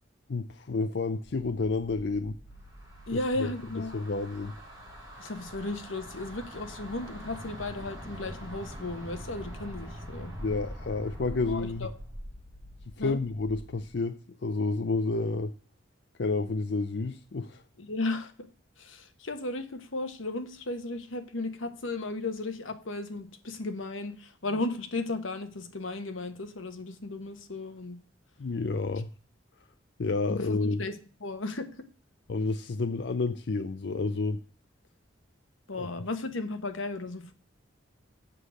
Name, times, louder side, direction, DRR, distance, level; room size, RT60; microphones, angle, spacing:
voice 1, 0.3-2.4 3.4-3.5 3.9-4.5 10.4-11.9 13.0-14.1 14.4-15.5 16.2-17.6 28.4-29.1 30.0-30.8 32.3-34.4 35.8-35.9, left 3 dB, 60° left, 9 dB, 0.5 m, -30 dB
sound 1, 1.2-13.9, equal, 40° left, 2.5 m, -52 dB
sound 2, 2.6-12.4, equal, 20° right, 3.5 m, -43 dB
voice 2, 3.1-4.0 5.2-10.3 11.5-11.9 13.0-13.2 17.8-18.3 18.8-28.0 30.3-31.7 35.7-37.3, left 2 dB, 90° left, 9 dB, 1.3 m, -35 dB
7.7 x 6.5 x 6.4 m, 0.39 s
head